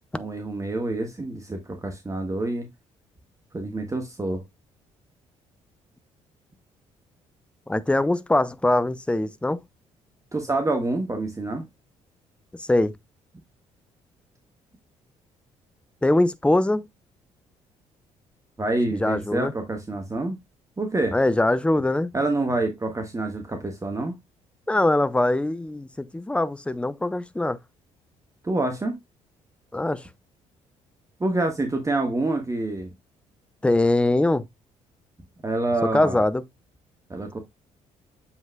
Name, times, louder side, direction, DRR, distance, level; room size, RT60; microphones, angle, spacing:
voice 1, 0.1-2.7 3.5-4.4 10.3-11.7 18.6-20.4 20.8-21.2 22.1-24.2 28.4-29.0 31.2-32.9 35.4-36.2 37.1-37.4, right 2 dB, 20° right, 1.4 m, -27 dB
voice 2, 7.7-9.6 12.6-12.9 16.0-16.8 18.9-19.5 21.1-22.1 24.7-27.6 29.7-30.1 33.6-34.5 35.9-36.4, left 2 dB, 5° left, 0.6 m, -22 dB
7.3 x 5.8 x 2.2 m
figure-of-eight pair, 45°, 17 cm